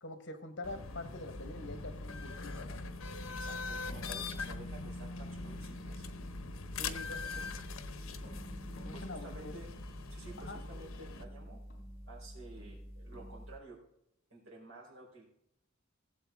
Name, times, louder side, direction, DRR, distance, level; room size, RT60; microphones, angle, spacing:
voice 1, 0.0-2.8 6.7-7.6 8.7-9.5 10.4-10.6, left 2 dB, 60° left, 8 dB, 1.4 m, -45 dB
sound 1, 0.6-11.2, left 4 dB, 80° left, 0.9 m, -42 dB
sound 2, 1.3-13.6, equal, 45° left, 3.3 m, -48 dB
voice 2, 3.3-6.0 8.9-9.7 10.1-11.6 12.1-13.8 14.3-15.2, right 2 dB, 80° right, -3 dB, 4.2 m, -52 dB
17.0 x 7.9 x 3.6 m, 0.76 s
head